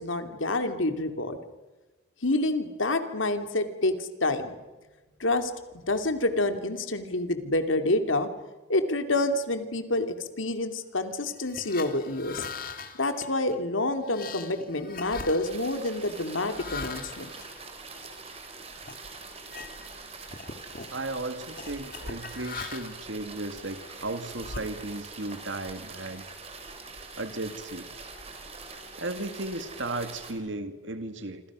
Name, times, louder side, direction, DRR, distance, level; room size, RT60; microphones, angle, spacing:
voice 1, 0.0-1.4 2.2-4.6 5.2-8.3 8.7-10.1 10.4-12.4 13.0-17.3, left 2 dB, 85° left, 8 dB, 2.7 m, -28 dB
sound 1, 11.3-18.3 18.8-19.0 19.4-20.0 20.3-21.0 21.6-23.1 23.7-25.2, left 4 dB, 45° left, 2.0 m, -41 dB
sound 2, 15.4-30.3, right 4 dB, 30° right, 3.9 m, -44 dB
voice 2, 20.9-26.2 27.2-27.9 29.0-31.4, right 2 dB, 75° right, 9 dB, 2.1 m, -35 dB
27.0 x 27.0 x 6.2 m, 1.2 s
head